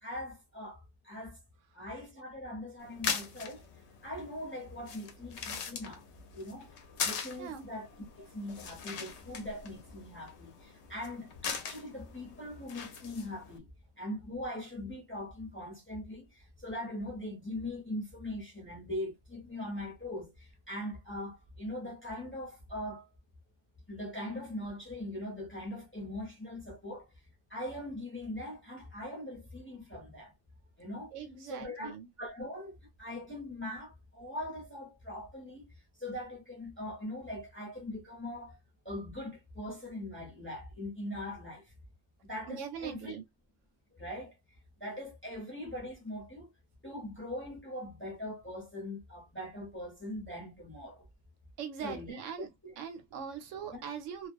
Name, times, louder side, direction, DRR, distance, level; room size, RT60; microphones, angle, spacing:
voice 1, 0.0-1.4 1.7-3.6 4.0-6.0 6.3-6.7 7.0-13.7 14.0-23.1 23.9-27.1 27.5-30.3 30.8-31.1 31.4-35.7 36.0-38.6 38.8-41.7 42.2-43.2 43.9-44.3 44.8-46.5 46.8-51.0 51.8-52.7 53.7-53.8, left 1 dB, 10° left, 0.6 m, -41 dB
sound 1, 2.8-13.6, left 6 dB, 65° left, 0.8 m, -41 dB
voice 2, 31.1-32.1 42.5-43.2 51.6-52.5 52.8-54.3, right 7 dB, 70° right, 0.8 m, -41 dB
2.3 x 2.1 x 2.5 m
omnidirectional pair, 1.5 m